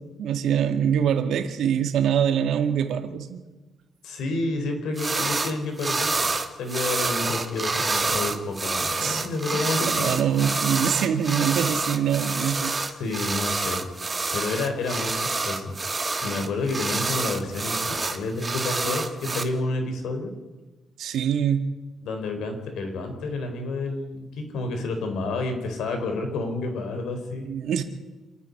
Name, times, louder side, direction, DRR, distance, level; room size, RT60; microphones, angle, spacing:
voice 1, 0.0-3.4 9.0-9.2 9.5-12.7 21.0-21.7 27.4-27.8, right 8 dB, 75° right, 8 dB, 2.0 m, -24 dB
voice 2, 4.0-6.1 6.5-10.4 12.8-15.8 16.2-20.3 22.0-27.5, left 3 dB, 80° left, 5 dB, 4.5 m, -30 dB
sound 1, 5.0-5.5 5.8-19.4, right 3 dB, 20° right, 1.4 m, -27 dB
27.0 x 10.0 x 9.7 m, 1.2 s
cardioid pair, 165°, 0 cm